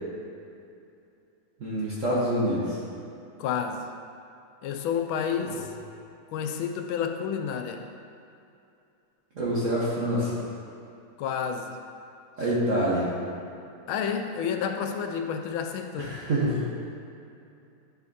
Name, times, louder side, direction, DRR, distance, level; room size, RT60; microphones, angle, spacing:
voice 1, 1.6-2.8 5.5-5.6 9.4-10.3 12.4-13.1 16.0-16.7, right 1 dB, 45° right, -8 dB, 1.2 m, -26 dB
voice 2, 3.4-3.9 4.6-5.7 6.3-7.9 11.2-11.8 12.4-12.5 13.9-16.2, left 7 dB, 80° left, 5 dB, 1.3 m, -30 dB
11.0 x 5.1 x 2.6 m, 2.6 s
omnidirectional pair, 2.2 m